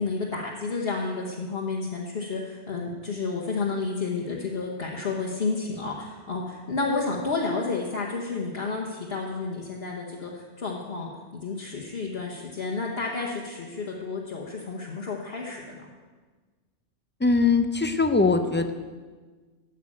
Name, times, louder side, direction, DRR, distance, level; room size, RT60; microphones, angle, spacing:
voice 1, 0.0-15.9, left 4 dB, 60° left, -2 dB, 1.4 m, -31 dB
voice 2, 17.2-18.7, left 4 dB, 15° left, 7 dB, 0.4 m, -21 dB
13.5 x 5.8 x 8.5 m, 1.4 s
omnidirectional pair, 1.2 m